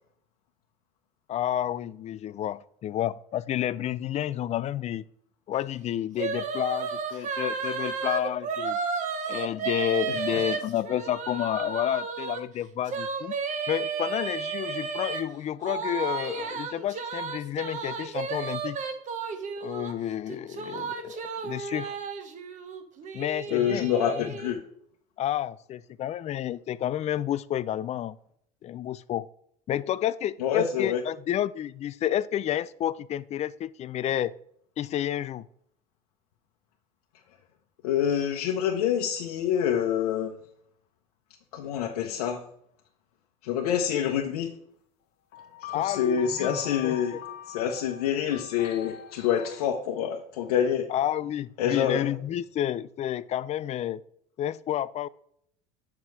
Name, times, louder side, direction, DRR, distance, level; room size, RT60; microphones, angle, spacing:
voice 1, 1.3-5.0 5.5-8.8 9.3-13.3 13.7-18.8 19.6-22.0 23.1-24.4 25.2-28.2 28.6-29.3 29.7-34.3 34.8-35.5 45.7-47.2 50.9-54.0 54.4-55.1, left 11 dB, 35° left, 18 dB, 0.4 m, -30 dB
sound 1, 6.2-12.4 12.9-15.2 15.6-19.9 20.3-24.5, right 5 dB, 40° right, 1.3 m, -33 dB
voice 2, 23.5-24.6 30.4-31.0 37.8-40.3 41.5-42.4 43.4-44.5 45.7-47.2 47.5-50.8 51.6-52.0, left 8 dB, 90° left, 0 dB, 1.0 m, -26 dB
sound 2, 45.3-49.7, left 9 dB, 55° left, 0.9 m, -42 dB
7.7 x 5.9 x 4.7 m, 0.69 s
supercardioid pair, 105°, 19 cm